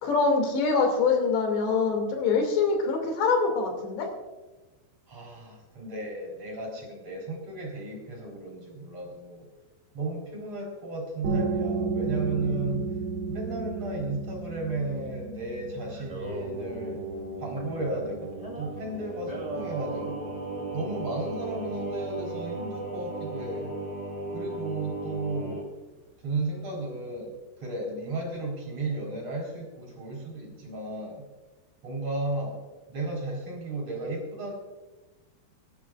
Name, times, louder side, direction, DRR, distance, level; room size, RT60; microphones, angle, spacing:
voice 1, 0.0-4.1, left 4 dB, 90° left, 2 dB, 4.8 m, -24 dB
voice 2, 5.1-9.4 9.9-12.8 13.3-17.0 17.4-20.4 20.7-23.7 24.3-25.7 26.2-27.3 27.6-31.2 31.8-32.6 32.9-34.5, right 2 dB, 40° right, -1 dB, 4.7 m, -34 dB
sound 1, 11.2-22.6, right 4 dB, 90° right, 4.0 m, -35 dB
Singing, 15.9-25.6, right 2 dB, 10° right, 2.4 m, -36 dB
25.0 x 12.0 x 2.5 m, 1.2 s
omnidirectional pair, 4.8 m